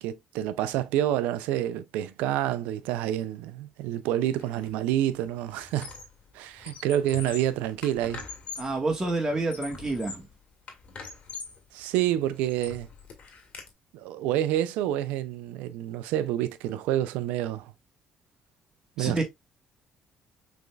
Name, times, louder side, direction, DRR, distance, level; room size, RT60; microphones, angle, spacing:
voice 1, 0.0-5.9 6.3-8.2 11.7-12.9 13.9-17.7 19.0-19.2, right 12 dB, 85° right, 0.4 m, -28 dB
Squeak, 4.4-4.7 5.0-6.2 6.5-8.8 9.3-10.3 10.7-11.6 12.1-13.7, left 5 dB, 55° left, 1.8 m, -42 dB
voice 2, 8.6-10.2 19.0-19.2, right 2 dB, 20° right, 1.6 m, -28 dB
6.0 x 3.4 x 2.4 m
supercardioid pair, 60°, 3 cm